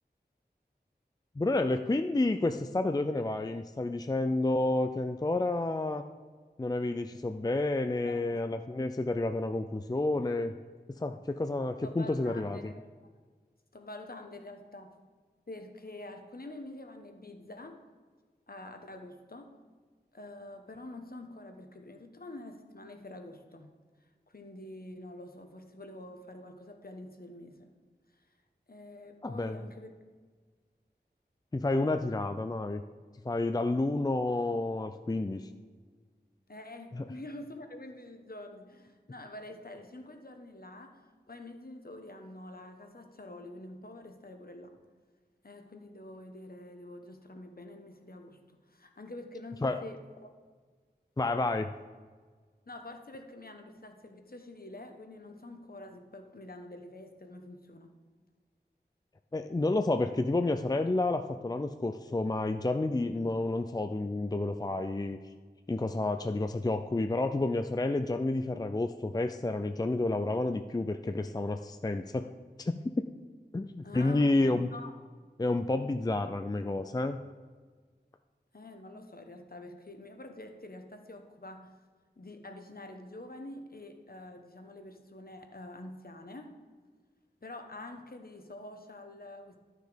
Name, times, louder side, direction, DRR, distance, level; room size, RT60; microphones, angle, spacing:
voice 1, 1.4-6.0 6.6-10.5 10.9-12.7 29.2-29.6 31.5-32.8 33.2-35.4 36.9-37.0 49.6-49.8 51.2-51.7 59.3-65.2 65.7-72.3 72.6-72.8 73.5-74.7 75.4-77.2, left 2 dB, 20° left, 8 dB, 0.4 m, -30 dB
voice 2, 8.0-8.4 11.8-13.1 13.7-14.9 15.5-17.8 18.5-19.5 20.1-23.8 24.3-27.7 28.7-29.9 36.5-44.8 45.4-50.3 52.7-57.9 73.8-74.9 78.5-81.7 82.2-86.5 87.4-89.6, left 2 dB, 55° left, 5 dB, 1.1 m, -47 dB
11.5 x 6.5 x 5.1 m, 1.5 s
wide cardioid pair, 55°, 18 cm